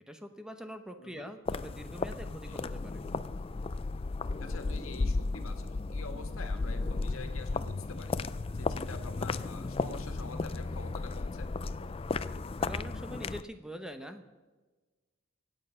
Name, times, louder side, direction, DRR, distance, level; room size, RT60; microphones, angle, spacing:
voice 1, 0.1-3.0 12.6-14.3, equal, 5° right, 7 dB, 0.8 m, -44 dB
voice 2, 1.0-1.3 2.5-2.6 4.4-8.2 8.5-11.5, left 3 dB, 85° left, 6 dB, 1.7 m, -46 dB
sound 1, 1.5-13.4, left 3 dB, 25° left, 0.4 m, -34 dB
24.0 x 8.9 x 5.6 m, 1.3 s
head